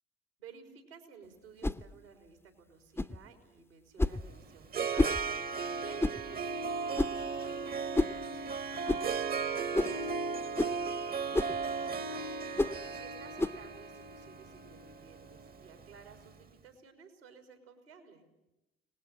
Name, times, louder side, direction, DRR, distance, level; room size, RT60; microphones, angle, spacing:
voice 1, 0.4-5.3 5.7-9.3 9.8-12.4 12.8-18.2, right 6 dB, 85° right, 5 dB, 3.7 m, -56 dB
sound 1, 1.6-1.8 3.0-3.2 4.0-4.2 5.0-5.2 6.0-6.2 7.0-7.2 7.9-8.2 8.9-9.1 9.7-10.0 10.6-10.8 11.3-11.6 12.6-12.8 13.4-13.6, left 2 dB, 10° left, 0.8 m, -29 dB
Harp, 4.1-16.2, right 5 dB, 30° right, 1.1 m, -36 dB
24.5 x 19.0 x 8.7 m, 0.93 s
figure-of-eight pair, 50°, 30 cm